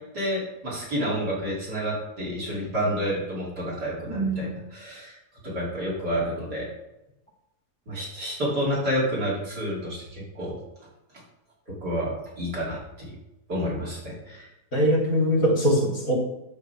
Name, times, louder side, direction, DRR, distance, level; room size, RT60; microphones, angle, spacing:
voice 1, 0.1-5.2 5.4-6.7 7.9-10.6 11.8-13.1 13.5-14.5, equal, 80° right, -4 dB, 5.0 m, -29 dB
voice 2, 4.1-4.5 14.7-16.2, equal, 60° left, -2 dB, 3.9 m, -22 dB
12.0 x 7.5 x 5.0 m, 0.91 s
omnidirectional pair, 1.7 m